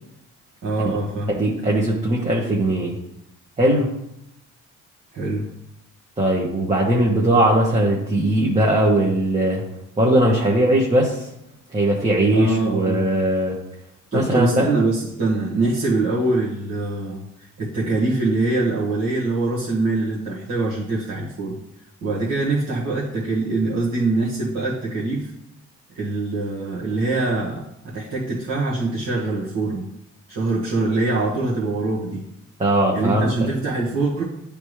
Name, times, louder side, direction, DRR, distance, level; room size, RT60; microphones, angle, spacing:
voice 1, 0.6-1.4 5.1-5.5 12.3-13.1 14.1-17.2 17.6-21.6 22.0-25.3 26.0-29.8 30.3-32.2 32.9-34.2, right 2 dB, 60° right, -7 dB, 1.5 m, -23 dB
voice 2, 1.3-3.0 3.6-3.9 6.2-9.6 10.0-11.3 11.7-13.5 14.1-14.7 32.6-33.5, right 1 dB, 20° right, -3 dB, 1.1 m, -19 dB
9.3 x 3.5 x 3.2 m, 0.81 s
cardioid pair, 90°, 30 cm